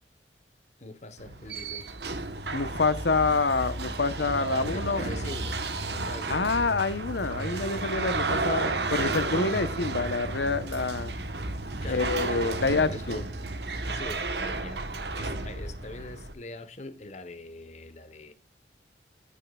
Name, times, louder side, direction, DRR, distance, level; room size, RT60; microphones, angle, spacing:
voice 1, 0.8-1.9 4.1-6.8 7.2-7.6 11.8-13.3 13.9-14.8 15.1-18.3, left 2 dB, 40° left, 1.1 m, -43 dB
sound 1, 1.2-16.3, right 2 dB, 70° right, 1.2 m, -33 dB
voice 2, 2.5-5.0 6.3-11.1 11.9-13.2, left 4 dB, 80° left, 0.9 m, -27 dB
sound 2, 4.2-13.6, right 3 dB, 40° right, 0.6 m, -42 dB
14.5 x 6.6 x 2.4 m
head